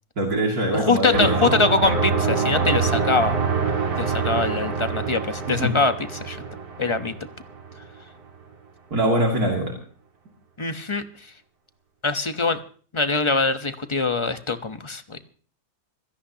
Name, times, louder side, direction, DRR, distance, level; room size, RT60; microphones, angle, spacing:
voice 1, 0.2-1.6 5.5-5.7 8.9-9.7, right 1 dB, 65° right, 0 dB, 3.1 m, -23 dB
voice 2, 0.7-3.4 4.0-6.4 6.8-7.1 10.6-11.0 12.0-12.6 12.9-15.2, left 3 dB, 20° left, 9 dB, 0.9 m, -23 dB
sound 1, 1.1-7.9, right 5 dB, 90° right, 2.8 m, -25 dB
25.5 x 16.5 x 2.9 m, 0.43 s
omnidirectional pair, 1.7 m